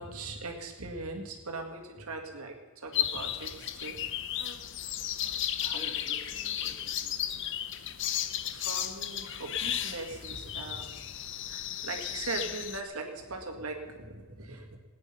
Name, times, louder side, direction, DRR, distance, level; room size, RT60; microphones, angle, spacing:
voice 1, 0.0-4.0 5.6-5.8 8.4-11.1 11.5-14.8, right 3 dB, 75° right, 3 dB, 2.0 m, -40 dB
sound 1, 2.9-12.8, left 10 dB, 55° left, 0.7 m, -34 dB
voice 2, 5.2-7.2, equal, 20° right, -1 dB, 2.4 m, -51 dB
18.0 x 9.8 x 5.6 m, 1.4 s
head